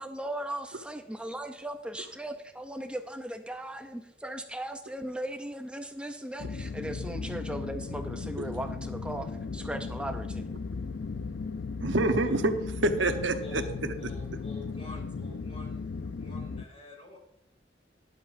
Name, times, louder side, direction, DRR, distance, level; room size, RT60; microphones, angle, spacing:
voice 1, 0.0-10.5, right 1 dB, 5° right, 6 dB, 0.5 m, -38 dB
sound 1, 6.4-16.6, left 4 dB, 75° left, 0.5 m, -36 dB
voice 2, 11.8-13.9, right 2 dB, 75° right, 7 dB, 0.9 m, -27 dB
voice 3, 14.0-17.2, left 3 dB, 30° left, 0 dB, 2.7 m, -47 dB
12.5 x 11.0 x 2.6 m, 0.82 s
head